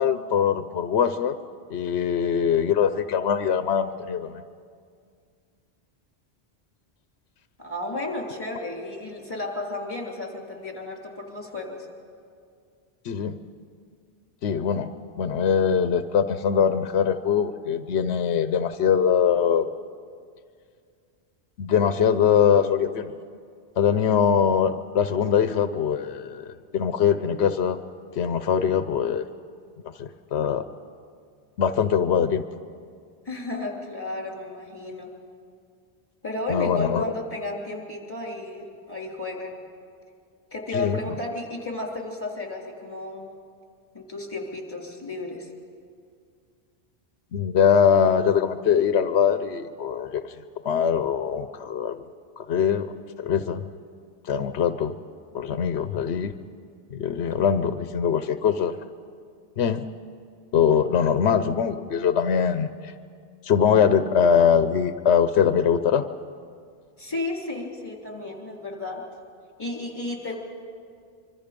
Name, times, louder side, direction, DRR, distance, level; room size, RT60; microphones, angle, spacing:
voice 1, 0.0-1.3 1.7-4.4 13.0-13.4 14.4-19.7 21.6-23.1 23.8-27.8 28.2-29.2 30.0-30.7 31.6-32.4 36.5-37.0 40.7-41.0 47.3-50.3 50.6-52.0 52.4-52.9 53.2-53.6 54.3-54.9 55.3-56.3 56.9-58.7 59.6-59.8 60.5-62.9 63.4-66.0, left 7 dB, 90° left, 11 dB, 1.0 m, -22 dB
voice 2, 7.6-11.9 33.3-35.1 36.2-39.6 40.5-43.3 43.9-45.5 67.0-69.0 69.6-70.4, left 2 dB, 20° left, -1 dB, 3.5 m, -33 dB
25.0 x 24.5 x 5.2 m, 2.2 s
omnidirectional pair, 1.1 m